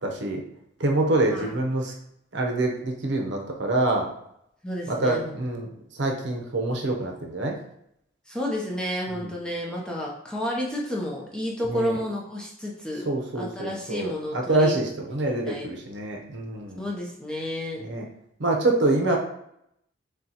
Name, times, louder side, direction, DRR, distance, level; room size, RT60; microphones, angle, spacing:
voice 1, 0.0-0.4 0.8-1.9 2.3-4.1 4.9-5.7 6.0-7.6 9.1-9.3 11.7-11.9 13.0-16.8 17.9-18.0 18.4-19.2, right 2 dB, 70° right, 1 dB, 0.8 m, -25 dB
voice 2, 4.6-5.3 8.3-13.1 13.3-14.8 15.5-15.7 16.8-17.8, left 1 dB, 5° left, -3 dB, 0.6 m, -31 dB
6.7 x 2.3 x 2.8 m, 0.75 s
head